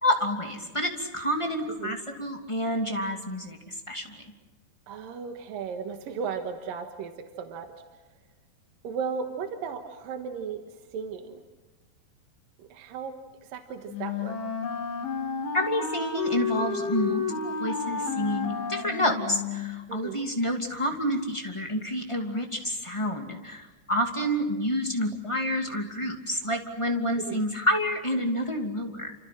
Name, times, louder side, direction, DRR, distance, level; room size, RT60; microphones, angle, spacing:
voice 1, 0.0-4.1 15.5-29.1, equal, 15° left, 2 dB, 1.3 m, -29 dB
voice 2, 4.9-7.7 8.8-11.4 12.6-13.1 13.5-14.4 19.9-20.2 27.3-27.4, right 6 dB, 65° right, 5 dB, 2.6 m, -35 dB
Wind instrument woodwind instrument, 13.9-19.8, left 5 dB, 80° left, 5.8 m, -31 dB
30.0 x 27.5 x 6.0 m, 1.2 s
omnidirectional pair, 5.4 m